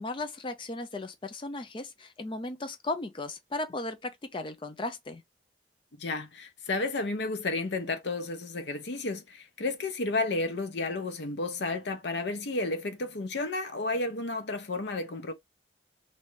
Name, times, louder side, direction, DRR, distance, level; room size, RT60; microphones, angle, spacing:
voice 1, 0.0-5.2, left 2 dB, 25° left, 0.4 m, -36 dB
voice 2, 5.9-15.3, left 2 dB, 65° left, 0.7 m, -32 dB
3.1 x 2.6 x 3.2 m
head